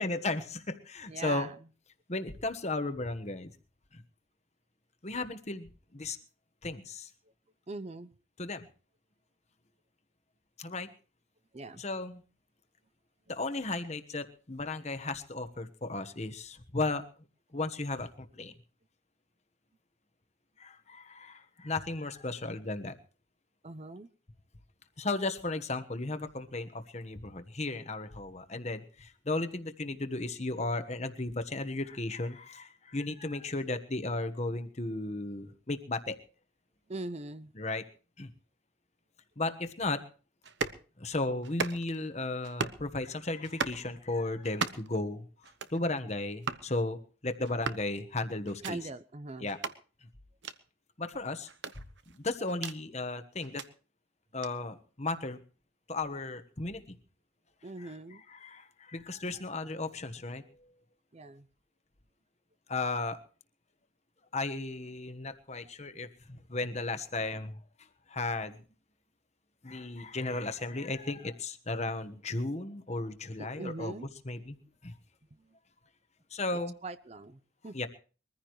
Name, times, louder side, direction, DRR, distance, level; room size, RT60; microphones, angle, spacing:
voice 1, 0.0-1.5 2.1-3.5 3.9-4.0 5.0-6.2 6.6-7.1 8.4-8.6 10.6-10.9 11.8-12.2 13.3-17.0 17.5-18.5 20.6-22.9 25.0-36.2 37.6-37.8 38.2-38.3 39.4-40.0 41.0-45.3 45.7-48.8 49.4-49.6 51.0-51.5 52.1-53.6 54.3-55.4 55.9-56.8 57.8-57.9 58.3-60.4 62.7-63.2 64.3-67.6 68.1-68.6 69.6-73.9 74.3-74.6 74.8-74.9 76.3-76.7 77.7-77.9, left 2 dB, 35° left, 9 dB, 1.3 m, -35 dB
voice 2, 1.1-1.6 7.7-8.1 11.5-11.8 13.3-13.4 23.6-24.1 36.9-37.5 48.6-49.5 57.6-58.2 61.1-61.5 73.4-74.1 75.3-75.5 76.5-77.8, right 2 dB, 35° right, 13 dB, 0.6 m, -41 dB
sound 1, 40.4-40.8 41.4-42.0 42.4-42.8 43.4-43.8 44.4-45.0 45.4-45.8 46.4-46.7 47.4-47.9 48.4-48.7 49.5-49.8 50.4-50.6 51.5-52.8 53.4-53.7 54.4-54.5, right 5 dB, 65° right, 1.0 m, -36 dB
22.5 x 15.0 x 3.1 m, 0.37 s
head